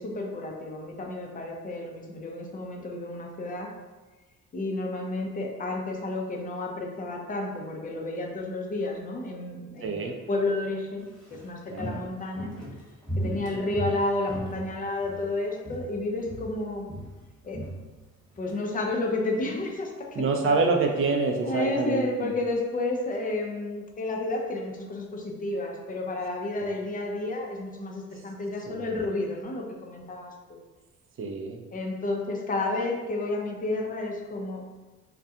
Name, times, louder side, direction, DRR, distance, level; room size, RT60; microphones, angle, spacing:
voice 1, 0.0-3.7 4.5-12.5 13.2-16.9 17.4-17.6 18.4-20.6 21.4-30.6 31.7-34.6, left 2 dB, 30° left, 0 dB, 0.5 m, -31 dB
voice 2, 9.8-10.2 11.7-12.0 13.3-13.4 20.2-22.3 28.7-28.9 31.2-31.6, right 4 dB, 45° right, 3 dB, 0.4 m, -27 dB
Walk footsteps, 11.0-15.3 15.6-16.0 16.2-18.6 18.9-19.0, right 1 dB, ahead, 1.1 m, -37 dB
2.4 x 2.2 x 2.7 m, 1.3 s
cardioid pair, 90°, 30 cm